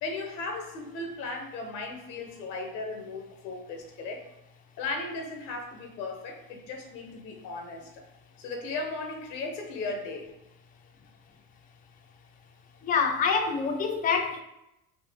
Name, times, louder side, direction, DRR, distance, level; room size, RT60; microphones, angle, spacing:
voice 1, 0.0-4.3 4.8-8.0 8.4-10.3, left 3 dB, 90° left, 3 dB, 0.8 m, -36 dB
voice 2, 12.8-14.4, left 5 dB, 20° left, 4 dB, 0.4 m, -26 dB
4.1 x 2.5 x 3.3 m, 0.89 s
hypercardioid pair, 60°, 50 cm